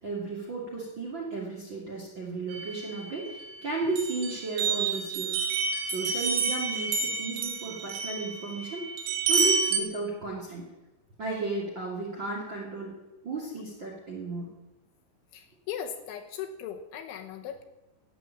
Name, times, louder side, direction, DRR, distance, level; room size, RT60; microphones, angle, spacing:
voice 1, 0.0-5.5 5.8-8.9 9.3-10.7 11.2-12.9 13.2-14.5, right 3 dB, 35° right, -2 dB, 2.1 m, -34 dB
sound 1, 2.5-3.5 4.0-9.8, right 5 dB, 80° right, 4.2 m, -29 dB
voice 2, 15.3-17.6, left 8 dB, 75° left, 5 dB, 3.1 m, -38 dB
14.5 x 9.0 x 8.6 m, 1.0 s
omnidirectional pair, 5.9 m